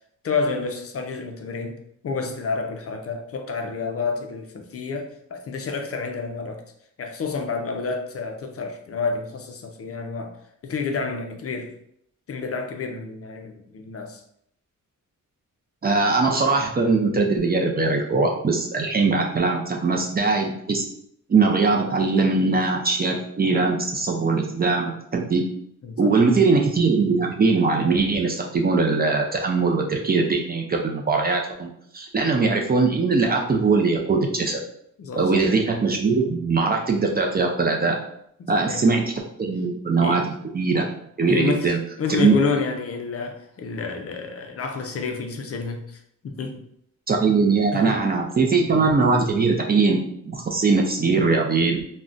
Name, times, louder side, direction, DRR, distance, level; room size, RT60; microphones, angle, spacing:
voice 1, 0.2-1.8 2.0-6.6 7.0-11.7 12.3-14.2 25.8-26.1 35.0-35.5 38.4-38.9 40.0-40.2 41.3-46.6 47.7-48.0, left 4 dB, 45° left, 4 dB, 0.4 m, -29 dB
voice 2, 15.8-20.8 21.3-25.4 26.0-34.6 35.2-38.0 38.5-39.0 39.4-40.9 41.2-41.8 42.1-42.3 47.1-51.8, right 4 dB, 30° right, 1 dB, 0.4 m, -21 dB
3.6 x 2.1 x 2.5 m, 0.71 s
wide cardioid pair, 130°, 32 cm